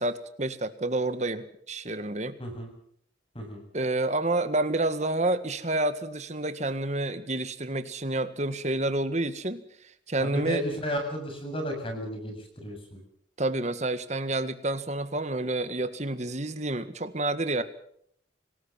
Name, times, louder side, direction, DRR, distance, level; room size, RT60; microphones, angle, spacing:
voice 1, 0.0-2.4 3.7-9.6 10.1-10.6 13.4-17.6, right 2 dB, 40° right, 11 dB, 1.8 m, -29 dB
voice 2, 2.4-2.7 3.3-3.6 10.2-13.0, equal, 30° left, 3 dB, 7.2 m, -33 dB
27.0 x 19.5 x 5.9 m, 0.67 s
head